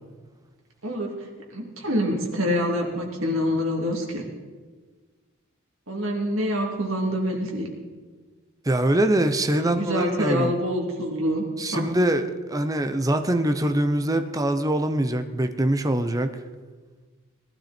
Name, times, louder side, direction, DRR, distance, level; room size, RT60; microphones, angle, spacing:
voice 1, 1.5-4.2 5.9-7.7 9.6-11.4 11.7-11.9, equal, 70° right, 0 dB, 2.8 m, -26 dB
voice 2, 8.7-10.5 11.6-16.4, right 1 dB, 15° right, 8 dB, 0.7 m, -23 dB
19.0 x 12.0 x 4.4 m, 1.4 s
head